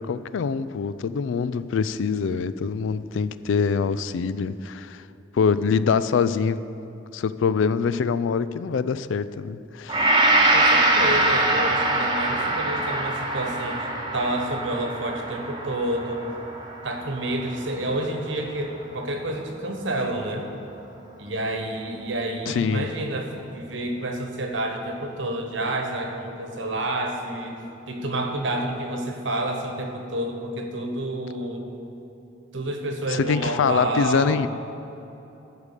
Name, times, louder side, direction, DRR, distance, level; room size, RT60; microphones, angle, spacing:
voice 1, 0.0-5.0 5.3-6.6 7.1-10.2 22.5-22.9 33.1-34.5, left 5 dB, 75° left, 14 dB, 0.4 m, -24 dB
Gong, 9.9-18.2 18.7-18.8, right 2 dB, 25° right, 1.1 m, -23 dB
voice 2, 10.5-16.2 16.8-20.5 21.2-27.6 27.9-31.7 32.5-34.5, right 1 dB, 70° right, 3 dB, 1.3 m, -29 dB
14.0 x 4.9 x 6.7 m, 3.0 s
head